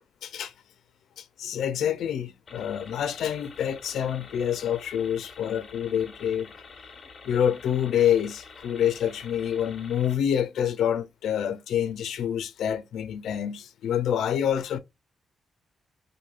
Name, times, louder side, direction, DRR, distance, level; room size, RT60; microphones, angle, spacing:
voice 1, 0.2-0.5 1.2-6.5 7.2-14.8, left 9 dB, 80° left, 0.4 m, -27 dB
sound 1, 2.5-10.2, left 4 dB, 35° left, 0.7 m, -47 dB
4.3 x 2.6 x 2.3 m
wide cardioid pair, 155°, 0 cm